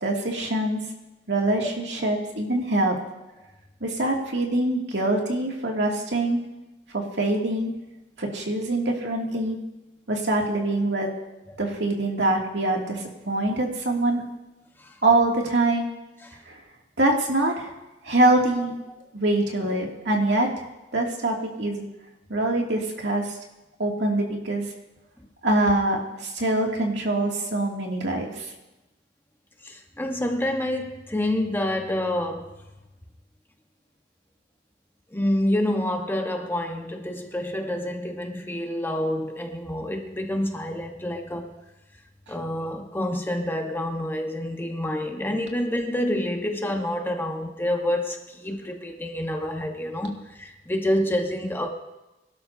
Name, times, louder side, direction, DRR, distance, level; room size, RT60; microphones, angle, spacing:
voice 1, 0.0-0.9 1.3-3.0 3.8-6.4 6.9-7.7 8.2-9.6 10.1-11.1 11.6-14.2 15.0-15.9 16.5-16.6 17.0-17.7 18.0-18.7 19.1-20.5 20.9-21.9 22.3-23.4 23.8-24.7 25.4-28.5, right 2 dB, 80° right, -1 dB, 2.6 m, -24 dB
voice 2, 29.6-32.5 35.1-41.5 42.3-51.7, left 1 dB, 15° left, 3 dB, 1.3 m, -28 dB
23.5 x 12.0 x 2.8 m, 1.0 s
head